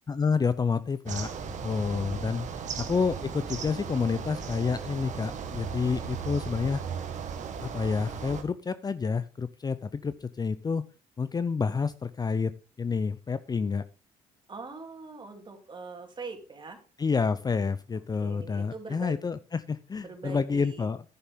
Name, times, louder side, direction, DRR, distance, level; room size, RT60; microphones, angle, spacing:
voice 1, 0.1-1.3 1.6-2.5 2.8-6.8 7.6-10.8 11.2-12.5 12.8-13.8 17.0-21.0, left 5 dB, 25° left, 14 dB, 0.6 m, -29 dB
sound 1, 1.1-8.4, right 6 dB, 55° right, 1.8 m, -36 dB
voice 2, 2.2-2.9 14.5-16.8 18.2-19.2 20.0-20.9, right 4 dB, 35° right, 4 dB, 3.1 m, -43 dB
10.5 x 9.7 x 3.7 m, 0.34 s
supercardioid pair, 75°, 15 cm